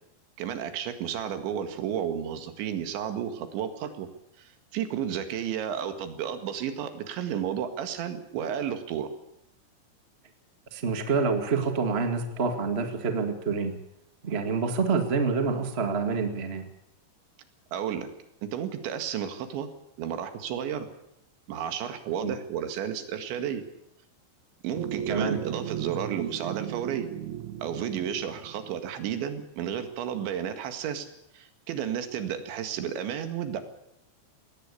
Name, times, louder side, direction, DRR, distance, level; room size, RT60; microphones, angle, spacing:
voice 1, 0.4-4.1 4.4-9.1 17.7-18.1 18.4-19.7 20.0-20.9 21.5-23.6 24.6-27.1 27.6-31.1 31.3-33.6, right 9 dB, 90° right, 8 dB, 4.2 m, -32 dB
voice 2, 10.7-13.8 14.2-16.7 22.2-22.3 25.1-25.4, right 4 dB, 40° right, 6 dB, 0.8 m, -27 dB
sound 1, 24.7-29.4, right 10 dB, 65° right, 2.0 m, -36 dB
19.5 x 18.0 x 8.5 m, 0.80 s
omnidirectional pair, 5.1 m